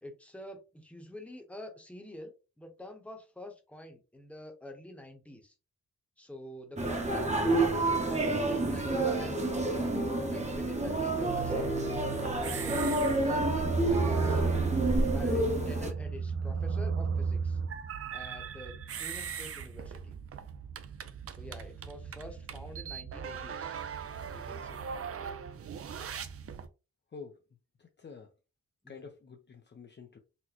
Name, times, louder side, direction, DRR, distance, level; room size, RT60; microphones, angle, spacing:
voice 1, 0.0-5.5 6.2-7.6 8.0-11.7 12.3-12.7 13.1-14.4 15.0-17.6 18.1-20.2 21.3-23.8 24.3-24.8 28.8-29.1, left 1 dB, 5° left, 3 dB, 0.9 m, -47 dB
sound 1, 6.8-15.9, right 2 dB, 25° right, 0.9 m, -29 dB
sound 2, 10.8-26.7, right 5 dB, 50° right, 0.5 m, -36 dB
voice 2, 28.9-30.2, left 5 dB, 40° left, 4 dB, 0.5 m, -48 dB
4.1 x 2.1 x 2.9 m, 0.31 s
cardioid pair, 80°, 29 cm